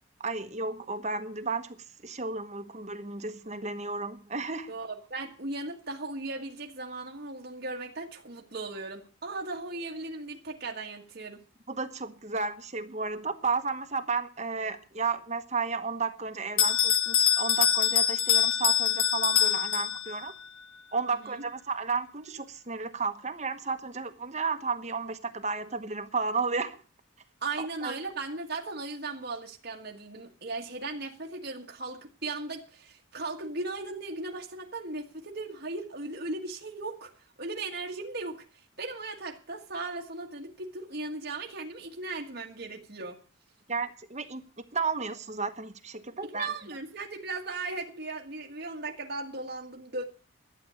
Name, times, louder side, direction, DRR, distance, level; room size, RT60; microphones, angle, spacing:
voice 1, 0.2-4.7 11.7-20.3 20.9-26.8 27.8-28.0 43.7-44.4 44.7-46.5, right 4 dB, 35° right, 1.1 m, -33 dB
voice 2, 4.7-11.4 21.2-21.4 27.4-37.1 37.4-38.4 38.8-43.2 46.2-50.0, right 3 dB, 50° right, 1.6 m, -37 dB
Bell, 16.6-20.3, left 8 dB, 75° left, 1.5 m, -24 dB
12.5 x 8.5 x 8.3 m
head